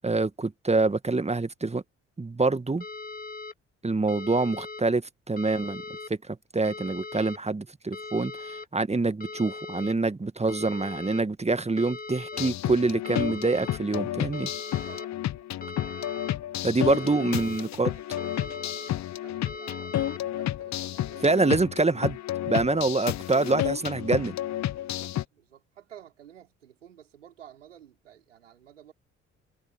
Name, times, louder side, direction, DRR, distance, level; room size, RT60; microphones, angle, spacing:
voice 1, 0.0-1.8 2.2-2.8 3.8-5.8 6.3-14.5 16.6-17.9 21.2-22.2 22.5-24.3, right 3 dB, 20° right, 1.8 m, -26 dB
sound 1, 2.8-3.5 4.1-4.8 5.4-6.1 6.6-7.4 7.9-8.7 9.2-9.9 10.5-11.2 11.8-12.5 13.0-13.8 14.3-15.1 15.6-16.3 16.9-17.6 18.2-18.9 19.5-20.2, left 3 dB, 25° left, 2.6 m, -39 dB
sound 2, 12.3-25.2, left 12 dB, 50° left, 1.1 m, -31 dB
voice 2, 14.9-15.5 15.9-16.1 16.8-16.9 17.6-21.4 24.8-28.9, right 10 dB, 85° right, 5.7 m, -53 dB
figure-of-eight pair, 45°, 36 cm